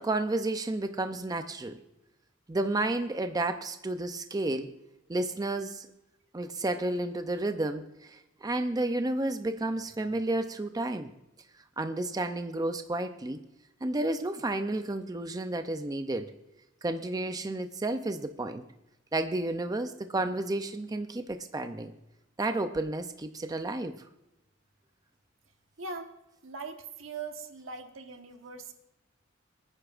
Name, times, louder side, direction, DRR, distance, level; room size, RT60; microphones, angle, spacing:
voice 1, 0.0-1.8 2.5-4.8 5.1-5.9 6.3-11.1 11.8-13.4 13.8-16.3 16.8-18.6 19.1-21.9 22.4-23.9, right 2 dB, 20° right, 8 dB, 0.5 m, -31 dB
voice 2, 25.8-26.1 26.4-28.7, right 4 dB, 75° right, 5 dB, 1.3 m, -41 dB
25.0 x 9.8 x 2.5 m, 0.94 s
head